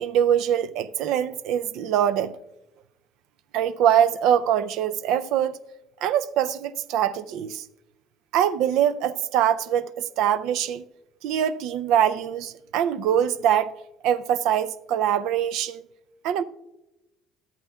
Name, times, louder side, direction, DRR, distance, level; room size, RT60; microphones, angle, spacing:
voice 1, 0.0-2.4 3.5-5.6 6.0-7.6 8.3-10.8 11.2-13.7 14.0-15.8 16.2-16.4, right 10 dB, 75° right, 0.4 m, -23 dB
12.5 x 8.8 x 2.3 m
supercardioid pair, 70°, 0 cm